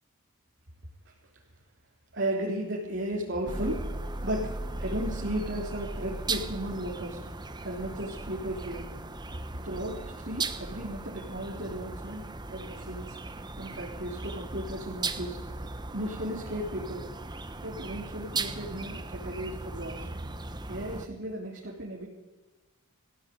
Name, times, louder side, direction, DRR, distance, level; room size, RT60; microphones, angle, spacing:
voice 1, 2.1-3.9 4.2-7.2 7.6-8.9 9.6-13.2 13.6-15.4 15.9-17.0 17.6-20.1 20.7-22.1, right 1 dB, 55° right, -2 dB, 3.5 m, -35 dB
sound 1, 3.5-21.1, right 3 dB, 20° right, 1.1 m, -37 dB
22.0 x 15.5 x 9.5 m, 1.2 s
head